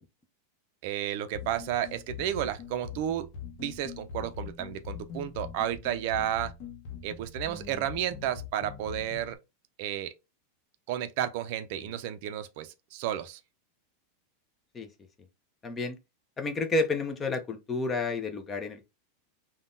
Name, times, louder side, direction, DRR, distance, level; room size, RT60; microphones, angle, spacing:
voice 1, 0.8-3.3 3.6-6.5 7.0-9.4 9.8-10.1 10.9-13.4, right 11 dB, 55° right, 0.4 m, -32 dB
sound 1, 1.3-9.4, left 7 dB, 50° left, 0.8 m, -42 dB
voice 2, 15.6-16.0 16.4-18.8, left 3 dB, 15° left, 0.4 m, -30 dB
3.6 x 2.1 x 2.5 m
supercardioid pair, 155°, 0 cm